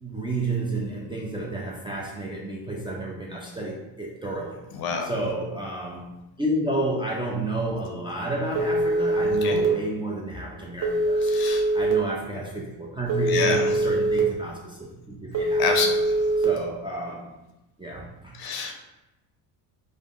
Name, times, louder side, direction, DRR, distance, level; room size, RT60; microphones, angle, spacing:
voice 1, 0.0-4.6 5.0-6.1 6.4-11.3 11.7-15.6 16.4-17.2 17.8-18.7, right 2 dB, 10° right, -4 dB, 0.4 m, -31 dB
voice 2, 4.7-5.1 9.4-9.6 11.2-11.6 13.3-13.8 15.6-16.2 18.3-18.7, left 5 dB, 50° left, 3 dB, 0.6 m, -27 dB
Telephone, 8.6-9.7 10.8-11.9 13.1-14.2 15.3-16.4, right 1 dB, 35° right, 0.8 m, -23 dB
3.4 x 2.1 x 2.4 m, 1.0 s
supercardioid pair, 70°, 48 cm